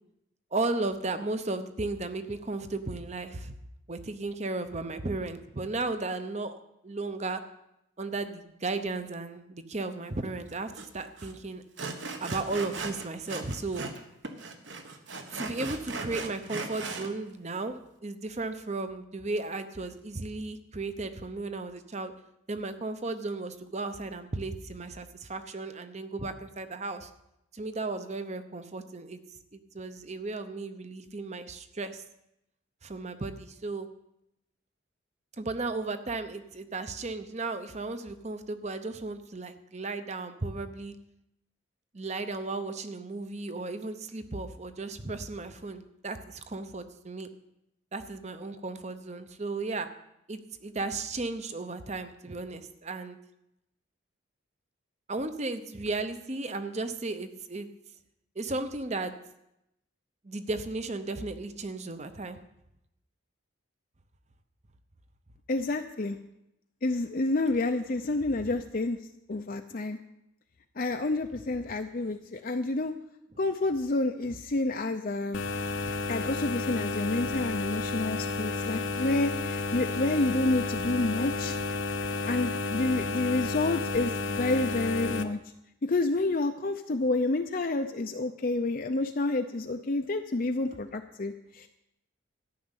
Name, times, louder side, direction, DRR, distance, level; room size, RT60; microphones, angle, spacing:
voice 1, 0.5-3.5 3.9-7.4 8.0-11.6 12.2-13.9 15.3-17.8 18.0-22.1 22.5-27.1 27.5-29.2 29.5-32.0 32.8-33.9 35.4-40.9 41.9-47.3 47.9-49.9 50.3-53.2 55.1-57.7 58.4-59.1 60.2-62.4 82.5-82.6, right 3 dB, 35° right, 10 dB, 0.8 m, -35 dB
Sawing, 10.7-10.9 11.2-11.3 11.8-14.0 14.2-17.1, right 3 dB, 60° right, 1.3 m, -38 dB
voice 2, 65.5-66.2 66.8-69.0 69.3-70.0 70.8-72.9 73.4-75.4 76.1-81.6 82.2-85.4 85.8-91.7, left 2 dB, 45° left, 6 dB, 0.6 m, -29 dB
sound 1, 75.3-85.2, left 3 dB, 70° left, 0.9 m, -32 dB
13.5 x 6.5 x 9.8 m, 0.84 s
head